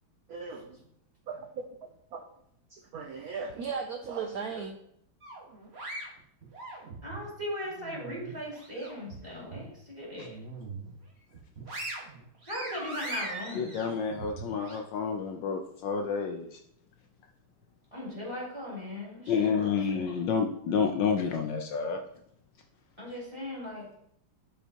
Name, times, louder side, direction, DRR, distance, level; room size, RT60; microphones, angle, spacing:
voice 1, 0.3-0.8 1.3-1.7 2.1-2.2 2.7-4.7, right 5 dB, 70° right, 4 dB, 0.9 m, -37 dB
sound 1, 5.2-7.2 7.7-9.1 9.5-9.7 10.1-10.9 11.3-14.8, right 2 dB, 35° right, 1.6 m, -41 dB
voice 2, 7.0-10.4 12.5-13.8 17.9-20.1 23.0-24.0, left 1 dB, 15° right, -6 dB, 3.1 m, -38 dB
voice 3, 13.6-16.6 19.3-22.0, left 6 dB, 70° left, 4 dB, 1.2 m, -29 dB
11.5 x 5.0 x 2.9 m, 0.71 s
omnidirectional pair, 2.2 m